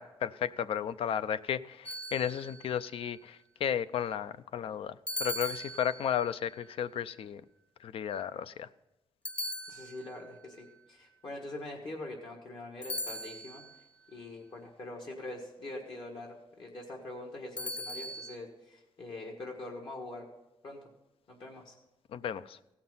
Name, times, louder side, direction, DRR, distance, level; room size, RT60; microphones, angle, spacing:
voice 1, 0.0-7.4 7.8-8.7 22.1-22.6, left 9 dB, 75° left, 15 dB, 0.4 m, -34 dB
sound 1, 1.9-2.8 5.1-6.3 9.3-10.3 12.8-13.8 17.6-18.4, equal, 10° left, 0.5 m, -39 dB
voice 2, 9.7-13.6 14.1-20.2 20.6-20.8 21.3-21.7, left 2 dB, 55° left, 0 dB, 1.6 m, -43 dB
16.0 x 5.9 x 5.5 m, 0.96 s
wide cardioid pair, 135°, 10 cm